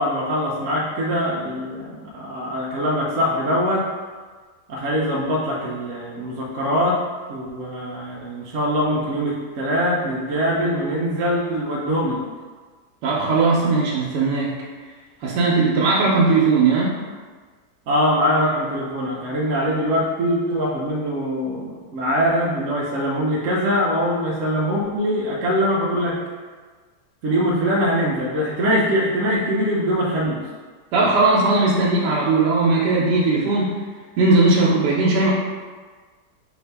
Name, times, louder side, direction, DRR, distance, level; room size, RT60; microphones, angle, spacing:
voice 1, 0.0-3.9 4.7-7.0 7.3-12.2 17.9-26.2 27.2-30.4, equal, 60° right, -5 dB, 0.9 m, -22 dB
voice 2, 13.0-14.5 15.2-17.0 30.9-33.8 34.2-35.3, right 3 dB, 85° right, -4 dB, 1.3 m, -18 dB
4.7 x 2.7 x 3.3 m, 1.4 s
omnidirectional pair, 1.7 m